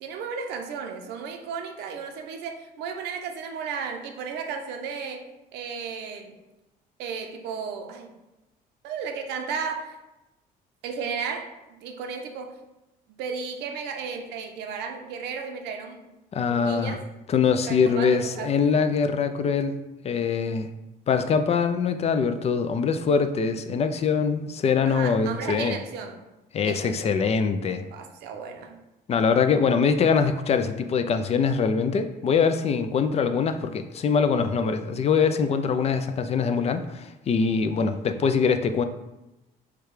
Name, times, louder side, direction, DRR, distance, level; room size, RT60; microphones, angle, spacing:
voice 1, 0.0-5.2 5.5-6.4 7.0-8.1 8.8-10.0 10.8-11.5 11.8-12.6 13.2-16.0 16.5-17.0 17.7-18.6 24.9-26.2 26.6-27.0 27.9-28.8, right 6 dB, 90° right, 4 dB, 0.7 m, -34 dB
voice 2, 16.3-17.0 17.3-20.7 21.1-25.8 26.5-27.8 29.1-38.8, left 5 dB, 40° left, 9 dB, 0.4 m, -23 dB
4.8 x 2.3 x 4.7 m, 0.98 s
cardioid pair, 110°, 17 cm